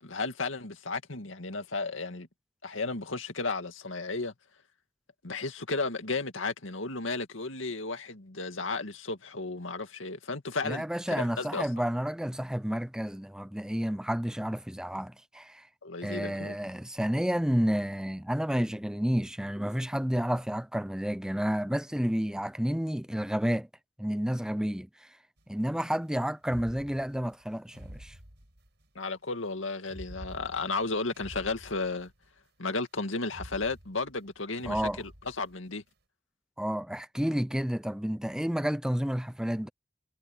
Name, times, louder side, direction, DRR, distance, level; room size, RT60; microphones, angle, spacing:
voice 1, 0.0-2.3 2.6-4.3 5.2-11.7 15.8-16.6 29.0-32.1 32.6-35.8, left 3 dB, 85° left, 2.2 m, -34 dB
voice 2, 10.6-15.7 16.0-23.7 24.0-25.1 25.5-28.2 34.7-35.0 36.6-39.7, equal, 5° right, 0.5 m, -30 dB
sound 1, 25.4-25.5 26.4-29.0 29.8-32.4 32.7-32.8 33.2-35.8, equal, 60° right, 7.6 m, -48 dB
head